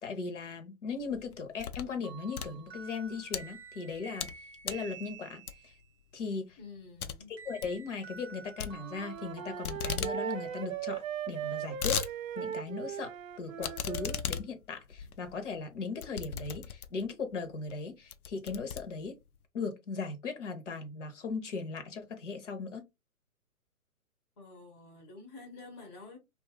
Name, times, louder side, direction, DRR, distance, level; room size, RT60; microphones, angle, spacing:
voice 1, 0.0-4.3 4.6-5.7 6.1-6.6 7.3-12.0 12.4-19.2 19.5-22.8, left 4 dB, 55° left, 0.8 m, -38 dB
sound 1, 1.0-2.0 2.3-3.4 3.9-4.4 4.6-4.9 5.5-5.8 6.2-6.3 6.6-6.7 7.0-7.2 7.4-7.8 8.6-9.3 9.6-10.2 10.5-10.6 10.7-10.8 11.4-12.1 12.5-12.6 13.6-17.1 17.7-17.8 18.1-19.4, left 7 dB, 80° left, 0.6 m, -37 dB
sound 2, 2.0-5.8 7.4-11.1, right 5 dB, 10° right, 0.8 m, -49 dB
voice 2, 6.6-7.3 24.4-26.2, left 3 dB, 20° left, 0.6 m, -49 dB
Wind instrument woodwind instrument, 8.7-14.2, right 9 dB, 65° right, 0.6 m, -38 dB
2.6 x 2.4 x 2.8 m
figure-of-eight pair, 135°, 44 cm